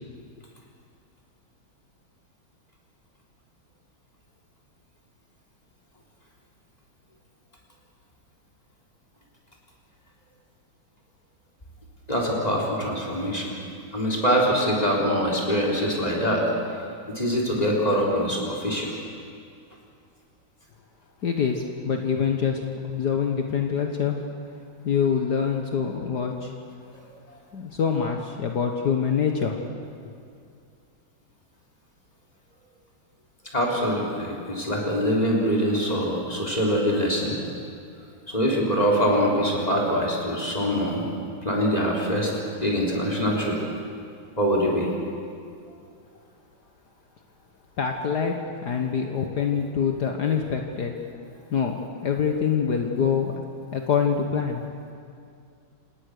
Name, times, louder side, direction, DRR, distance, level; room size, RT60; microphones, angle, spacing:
voice 1, 12.1-13.6 13.9-16.4 17.1-18.9 26.9-27.0 33.5-37.4 38.3-41.0 41.4-42.3 42.6-43.6 44.4-44.9, equal, 20° left, -2 dB, 3.9 m, -24 dB
voice 2, 21.2-24.2 24.8-26.5 27.5-29.6 47.8-48.3 48.6-50.9 51.5-51.7 52.0-53.4 53.7-54.6, left 6 dB, 55° left, 3 dB, 1.7 m, -25 dB
27.5 x 18.5 x 6.6 m, 2.4 s
omnidirectional pair, 2.2 m